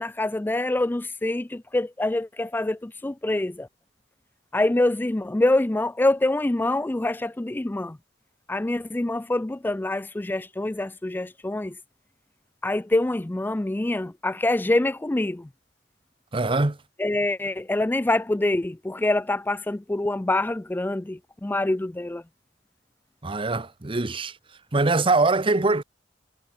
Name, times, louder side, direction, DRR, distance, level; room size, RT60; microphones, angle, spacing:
voice 1, 0.0-3.7 4.5-8.0 8.5-11.7 12.6-15.5 17.0-22.2, left 2 dB, 10° left, 0.4 m, -25 dB
voice 2, 16.3-16.8 23.2-24.3 24.7-25.8, right 3 dB, 30° right, 0.9 m, -22 dB
head